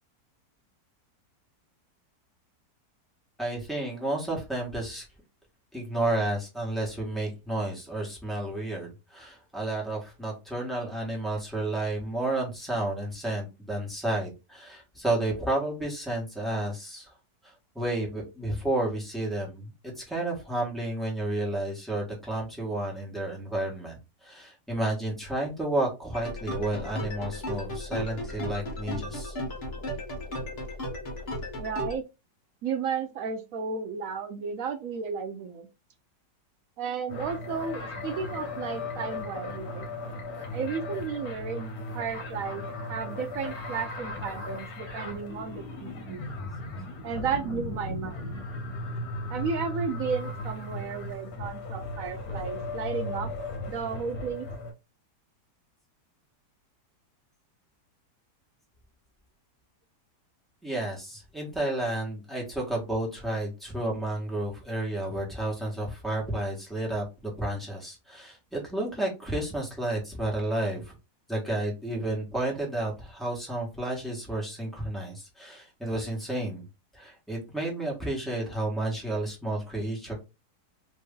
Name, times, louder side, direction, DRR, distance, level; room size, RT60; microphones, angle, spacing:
voice 1, 3.4-5.0 5.7-17.1 17.4-19.7 20.0-23.9 24.2-29.3 60.6-70.9 71.3-76.6 76.9-80.1, right 1 dB, ahead, 1.2 m, -31 dB
sound 1, 26.1-32.0, left 1 dB, 45° left, 1.1 m, -35 dB
voice 2, 31.6-32.0 32.6-35.7 36.8-39.9 40.5-46.2 47.0-48.4 49.3-53.3 53.7-54.5, right 6 dB, 70° right, 0.8 m, -33 dB
sound 2, 37.1-54.7, left 2 dB, 65° left, 1.3 m, -36 dB
3.1 x 2.7 x 3.6 m
omnidirectional pair, 1.8 m